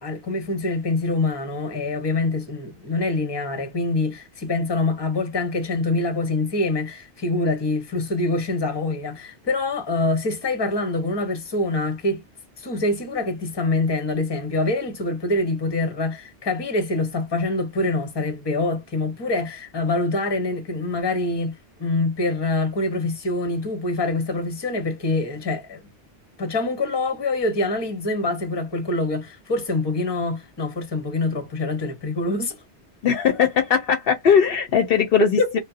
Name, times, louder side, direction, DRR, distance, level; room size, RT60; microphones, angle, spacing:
voice 1, 0.0-12.2 12.6-25.8 26.4-32.6 35.2-35.6, left 2 dB, 25° left, 0.7 m, -25 dB
voice 2, 33.0-35.6, left 7 dB, 65° left, 0.7 m, -19 dB
2.6 x 2.1 x 2.3 m
omnidirectional pair, 1.1 m